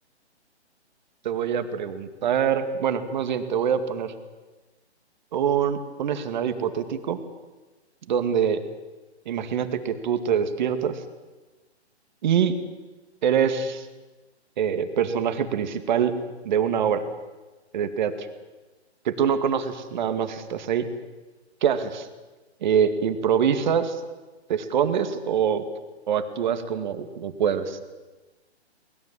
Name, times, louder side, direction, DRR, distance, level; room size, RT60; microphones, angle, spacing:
voice 1, 1.2-4.1 5.3-7.2 8.1-8.6 9.3-11.0 12.2-12.5 13.2-13.9 14.6-16.2 16.4-17.0 17.7-18.3 19.0-20.9 21.6-22.1 22.6-24.0 24.5-25.6 26.1-27.8, right 8 dB, 45° right, 9 dB, 2.3 m, -24 dB
23.0 x 20.5 x 7.6 m, 1.2 s
figure-of-eight pair, 135°, 33 cm